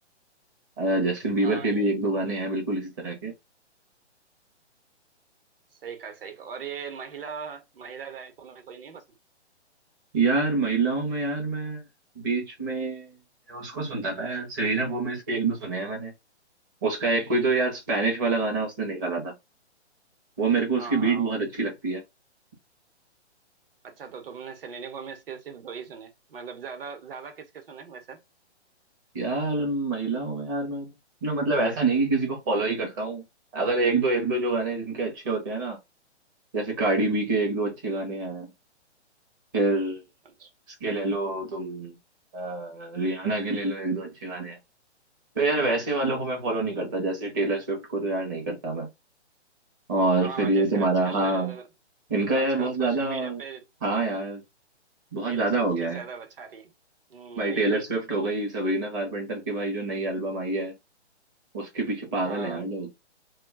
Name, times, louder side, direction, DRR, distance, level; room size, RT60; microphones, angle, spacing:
voice 1, 0.8-3.3 10.1-11.8 12.2-13.1 13.5-16.1 16.8-19.3 20.4-22.0 29.1-30.9 31.2-33.2 33.5-35.8 36.5-38.5 39.5-40.0 40.8-42.0 42.3-44.6 45.4-48.9 49.9-51.6 52.1-53.4 53.8-54.4 55.1-56.0 57.4-60.7 61.5-62.9, right 3 dB, 15° right, 0.6 m, -26 dB
voice 2, 1.4-1.9 5.8-9.0 20.8-21.4 23.8-28.2 40.2-40.5 50.2-51.6 52.3-53.7 55.3-56.7 57.1-57.6 62.2-62.7, right 6 dB, 55° right, 0.9 m, -40 dB
2.3 x 2.2 x 3.4 m
hypercardioid pair, 155°, 35 cm